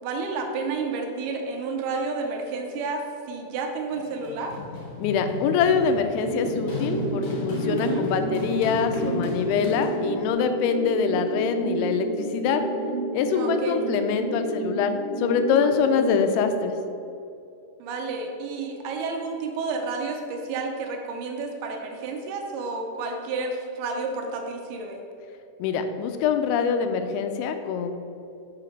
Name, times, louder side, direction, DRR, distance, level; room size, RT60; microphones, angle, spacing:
voice 1, 0.0-4.6 7.7-8.1 13.3-13.8 16.1-16.3 17.8-25.0, right 4 dB, 80° right, 2 dB, 2.3 m, -31 dB
Run, 3.9-10.3, left 2 dB, 55° left, 2.4 m, -35 dB
voice 2, 5.0-12.6 13.1-16.8 25.6-28.0, left 6 dB, 85° left, 7 dB, 2.9 m, -24 dB
sound 1, 6.2-16.2, right 2 dB, 60° right, 2.6 m, -30 dB
6.8 x 4.9 x 5.7 m, 2.7 s
omnidirectional pair, 5.2 m